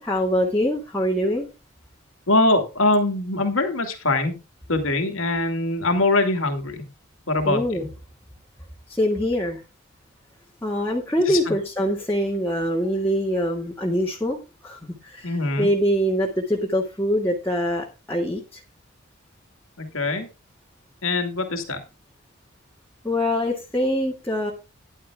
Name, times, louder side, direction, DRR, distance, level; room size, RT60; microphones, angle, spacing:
voice 1, 0.0-1.5 7.4-7.9 9.0-9.6 10.6-18.6 23.0-24.5, equal, 10° left, -3 dB, 1.9 m, -24 dB
voice 2, 2.3-4.4 4.7-6.8 7.3-7.9 11.2-11.5 15.2-15.7 19.8-20.3 21.0-21.8, left 2 dB, 80° left, 5 dB, 2.4 m, -23 dB
13.0 x 11.0 x 2.3 m, 0.29 s
head